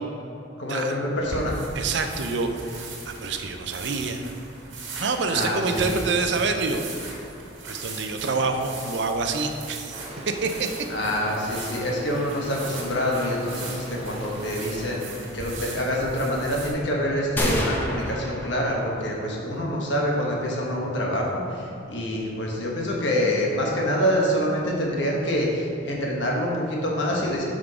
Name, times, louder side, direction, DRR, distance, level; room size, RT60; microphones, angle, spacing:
voice 1, 0.6-1.6 5.3-6.0 10.9-27.4, equal, 70° left, -2 dB, 1.3 m, -26 dB
sound 1, 1.2-16.7, right 3 dB, 85° right, 1.4 m, -39 dB
voice 2, 1.8-2.5 2.8-4.2 5.0-6.8 7.7-10.0 10.3-10.7, right 4 dB, 70° right, 5 dB, 0.5 m, -26 dB
Stream, 9.9-15.0, right 1 dB, 30° right, 0.7 m, -40 dB
sound 2, 17.4-19.2, equal, 10° left, 0.7 m, -28 dB
6.0 x 5.1 x 4.8 m, 2.8 s
head